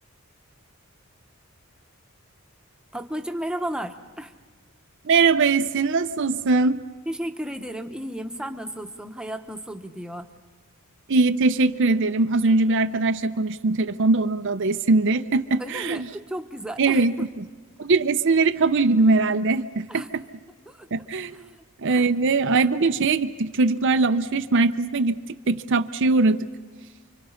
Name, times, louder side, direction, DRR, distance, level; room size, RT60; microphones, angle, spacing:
voice 1, 2.9-4.3 7.1-10.3 15.6-17.1 19.9-20.1 20.7-21.5 21.9-22.0, right 1 dB, 5° right, 5 dB, 1.1 m, -34 dB
voice 2, 5.0-6.8 11.1-16.0 16.8-17.5 17.8-20.2 20.9-21.4 21.8-25.2 25.5-26.5, right 3 dB, 55° right, 9 dB, 0.6 m, -21 dB
29.0 x 24.5 x 5.7 m, 1.3 s
head